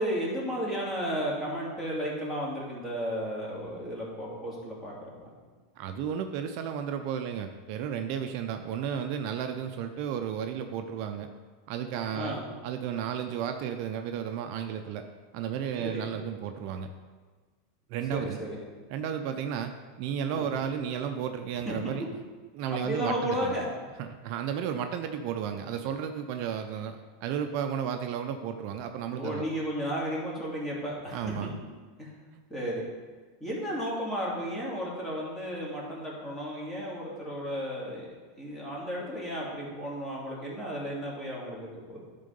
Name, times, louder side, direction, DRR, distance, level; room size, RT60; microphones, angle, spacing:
voice 1, 0.0-5.3 12.1-12.4 15.8-16.1 18.1-18.6 20.3-20.5 21.7-21.8 22.7-23.7 29.1-31.2 32.0-32.1 32.5-32.8 33.4-42.0, equal, 10° left, -5 dB, 2.7 m, -33 dB
voice 2, 5.8-11.3 11.7-15.0 15.3-16.9 17.9-18.5 18.9-19.7 20.0-22.1 22.5-23.6 24.0-29.4 31.1-31.5, right 8 dB, 55° right, 6 dB, 0.6 m, -33 dB
10.5 x 3.8 x 5.3 m, 1.4 s
supercardioid pair, 125°, 0 cm